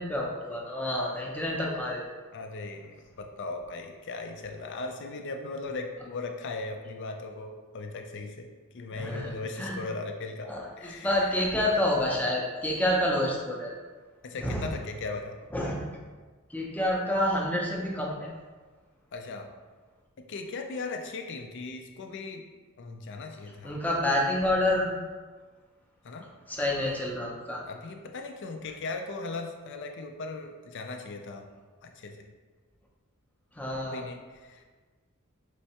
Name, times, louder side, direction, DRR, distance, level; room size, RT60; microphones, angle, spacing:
voice 1, 0.0-2.0 8.9-9.8 10.5-13.7 14.4-14.7 15.5-16.0 16.5-18.3 23.6-24.9 26.5-27.6 33.6-34.0, left 1 dB, 5° left, -2 dB, 0.5 m, -28 dB
voice 2, 2.3-8.5 8.7-10.5 10.8-11.3 14.2-15.4 19.1-19.5 20.3-22.4 22.8-23.8 24.1-24.2 26.0-26.3 27.7-31.4 31.8-32.2 33.9-34.6, left 3 dB, 55° left, 4 dB, 0.4 m, -38 dB
4.4 x 3.1 x 2.8 m, 1.4 s
head